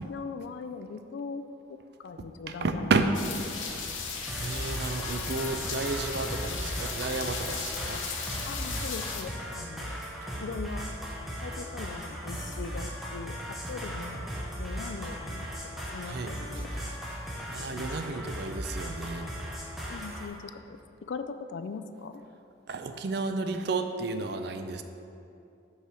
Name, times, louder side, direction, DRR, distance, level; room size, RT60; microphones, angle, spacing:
voice 1, 0.0-1.4 1.7-3.0 3.7-4.1 8.5-10.0 10.4-10.9 11.4-14.3 14.6-15.5 15.9-16.7 17.7-17.9 19.9-20.8 21.1-22.2, left 4 dB, 65° left, 9 dB, 0.3 m, -40 dB
voice 2, 2.6-3.1 4.4-8.9 16.1-16.3 17.5-19.3 22.7-24.8, right 3 dB, 55° right, 8 dB, 0.4 m, -32 dB
sound 1, 3.1-9.2, left 5 dB, 80° left, 0.8 m, -36 dB
sound 2, 4.3-20.3, equal, ahead, 0.7 m, -37 dB
5.4 x 4.9 x 6.1 m, 2.7 s
head